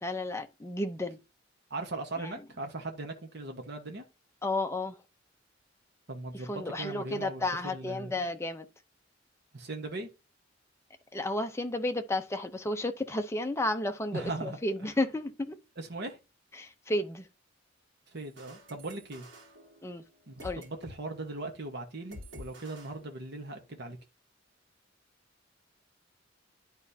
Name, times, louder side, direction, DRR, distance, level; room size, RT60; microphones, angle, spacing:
voice 1, 0.0-1.2 2.2-2.3 4.4-5.0 6.4-8.7 11.1-15.6 16.6-17.3 19.8-20.0 20.4-20.6, left 1 dB, 15° left, 0.7 m, -32 dB
voice 2, 1.7-4.0 6.1-8.2 9.5-10.1 14.1-14.6 15.8-16.2 18.1-19.3 20.3-24.0, right 2 dB, 60° right, 1.2 m, -39 dB
sound 1, 18.2-21.0 21.3-21.5 22.1-23.6, equal, 75° right, 2.9 m, -50 dB
11.5 x 4.2 x 2.8 m
head